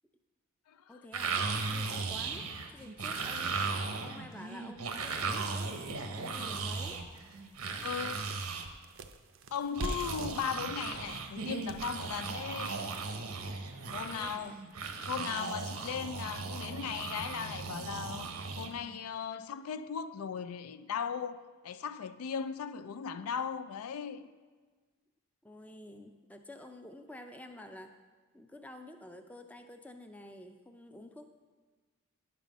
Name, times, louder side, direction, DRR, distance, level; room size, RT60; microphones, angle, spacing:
voice 1, 0.9-1.4 1.7-5.7 6.1-7.0 14.1-14.6 25.4-27.9 28.3-31.2, left 1 dB, 5° left, 0.4 m, -50 dB
sound 1, 1.1-8.7 9.8-19.0, right 4 dB, 80° right, 0.8 m, -37 dB
sound 2, 6.2-6.3 6.8-6.9 7.2-13.3, right 2 dB, 60° right, 0.5 m, -44 dB
voice 2, 7.8-8.4 9.5-12.8 13.9-14.6 15.1-18.3 18.6-24.3, left 7 dB, 80° left, 0.4 m, -38 dB
9.9 x 5.6 x 5.2 m
head